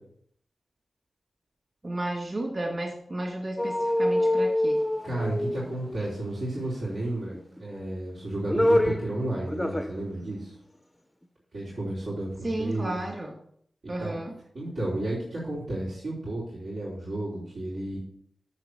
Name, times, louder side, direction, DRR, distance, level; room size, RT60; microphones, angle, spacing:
voice 1, 1.8-4.8 12.4-13.4 13.9-14.4, right 1 dB, 30° right, -2 dB, 2.3 m, -32 dB
sound 1, 3.6-6.1 7.3-7.9 8.3-9.1 9.5-10.0 10.3-10.4, left 1 dB, 5° left, 0.5 m, -25 dB
voice 2, 5.0-10.5 11.5-13.0 14.0-14.2 14.5-18.0, right 1 dB, 85° right, -9 dB, 3.3 m, -32 dB
7.2 x 6.7 x 6.3 m, 0.67 s
wide cardioid pair, 130°, 0 cm